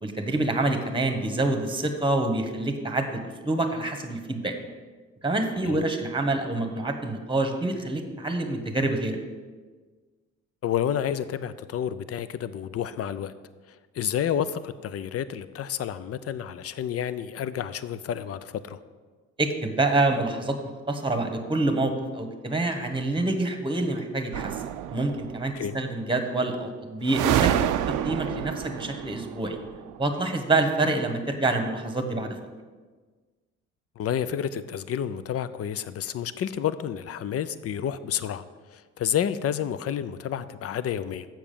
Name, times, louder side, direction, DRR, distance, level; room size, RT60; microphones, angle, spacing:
voice 1, 0.0-4.5 5.2-9.2 19.4-20.6 20.9-24.6 24.9-29.6 30.0-32.4, right 2 dB, 15° right, 6 dB, 1.2 m, -27 dB
voice 2, 10.6-13.3 13.7-18.8 25.5-25.8 34.0-38.4 38.7-41.3, left 9 dB, 50° left, 14 dB, 0.5 m, -30 dB
sound 1, 24.3-25.5 27.1-29.9, right 11 dB, 90° right, 0.5 m, -28 dB
7.2 x 6.0 x 6.8 m, 1.4 s
cardioid pair, 90°, 30 cm